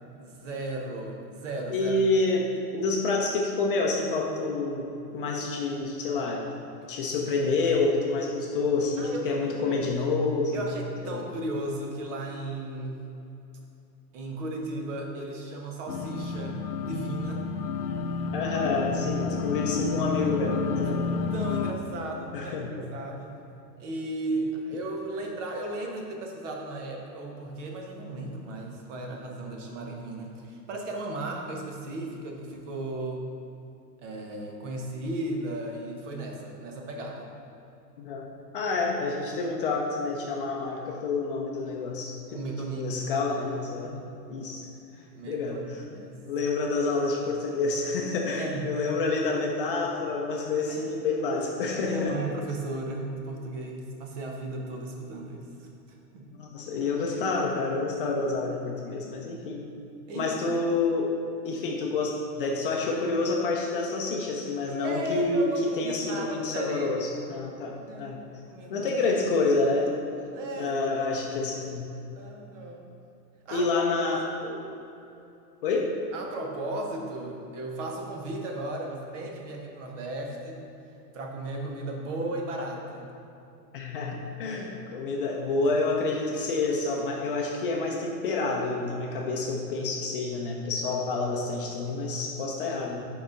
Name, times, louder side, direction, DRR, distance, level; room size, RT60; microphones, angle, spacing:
voice 1, 0.2-1.9 9.0-9.2 9.6-9.7 10.5-13.0 14.1-17.5 20.9-21.0 21.3-23.4 23.8-33.2 34.0-37.3 42.3-43.0 43.8-44.0 44.9-46.1 48.4-48.7 50.7-51.0 51.8-55.7 56.1-56.3 60.1-60.3 64.8-66.9 67.1-67.4 67.9-68.2 68.5-68.9 70.3-71.1 72.2-72.8 73.4-74.7 76.1-80.6 81.1-83.1, right 2 dB, 50° right, 1 dB, 1.1 m, -35 dB
voice 2, 1.7-6.4 6.9-10.7 11.0-11.2 18.3-21.4 22.3-22.7 38.0-38.3 38.5-42.4 42.7-44.0 44.3-44.7 45.2-45.8 46.3-52.2 56.4-59.6 60.1-61.1 61.4-68.2 68.7-70.0 70.6-71.9 73.5-74.2 75.6-75.9 83.7-93.0, left 3 dB, 35° left, 0 dB, 0.5 m, -28 dB
sound 1, 15.9-21.7, left 5 dB, 70° left, 0.7 m, -30 dB
5.0 x 4.8 x 5.1 m, 2.8 s
hypercardioid pair, 150°, 49 cm